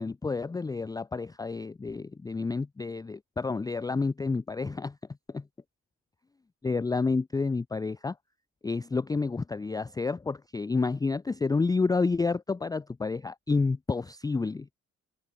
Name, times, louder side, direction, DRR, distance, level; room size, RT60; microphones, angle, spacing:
voice 1, 0.0-5.0 5.3-5.4 6.6-8.2 8.6-14.7, left 4 dB, 15° left, 0.4 m, -29 dB
cardioid pair, 90°, 30 cm